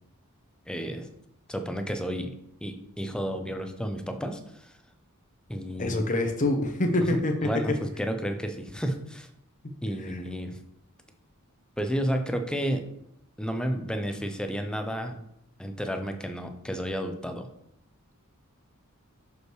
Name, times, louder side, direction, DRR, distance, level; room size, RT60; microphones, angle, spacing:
voice 1, 0.7-1.1 1.5-2.4 2.6-4.7 5.5-6.0 7.4-9.3 9.8-10.6 11.8-12.9 13.4-15.2 15.6-17.5, equal, 5° left, 6 dB, 0.5 m, -31 dB
voice 2, 5.8-7.5 10.1-10.2, left 1 dB, 35° left, 4 dB, 0.7 m, -25 dB
6.3 x 5.2 x 3.1 m, 0.77 s
head